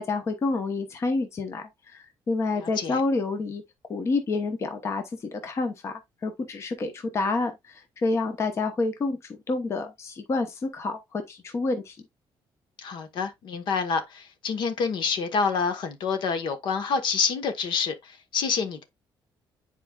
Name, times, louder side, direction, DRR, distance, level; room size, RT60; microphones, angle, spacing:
voice 1, 0.0-3.6 3.9-12.0, left 3 dB, 30° left, 0.9 m, -28 dB
voice 2, 2.6-3.0 12.8-18.8, left 5 dB, 65° left, 1.2 m, -27 dB
9.6 x 4.5 x 2.4 m
cardioid pair, 170°, 9 cm